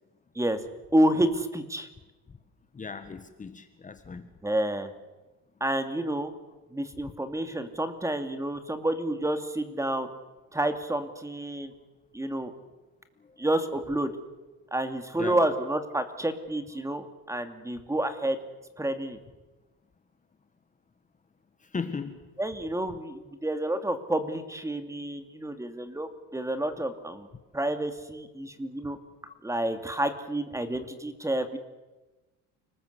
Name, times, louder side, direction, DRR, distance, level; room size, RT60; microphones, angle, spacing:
voice 1, 0.9-1.9 4.4-4.9 5.6-6.3 6.7-10.1 10.5-11.7 12.1-12.5 13.4-14.1 14.7-18.4 18.8-19.2 22.4-27.3 27.5-29.0 29.4-31.6, right 1 dB, 10° right, 8 dB, 2.5 m, -29 dB
voice 2, 2.8-4.3 15.2-15.4 21.7-22.2, left 5 dB, 25° left, 9 dB, 1.6 m, -36 dB
29.5 x 20.5 x 8.3 m, 1.1 s
cardioid pair, 120°, 33 cm